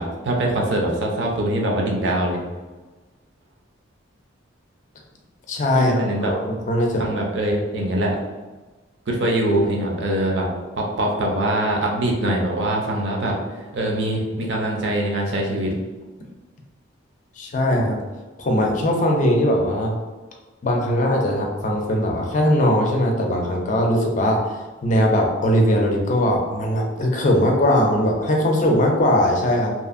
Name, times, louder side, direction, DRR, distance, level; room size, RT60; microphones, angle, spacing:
voice 1, 0.0-2.4 5.7-6.3 7.0-8.2 9.1-10.5 10.8-13.4 13.7-15.8, right 1 dB, 60° right, -1 dB, 0.5 m, -23 dB
voice 2, 5.5-7.1 17.4-18.0 18.4-20.0 20.6-24.4 24.8-29.7, left 1 dB, 40° left, 0 dB, 0.4 m, -20 dB
2.7 x 2.5 x 2.5 m, 1.3 s
head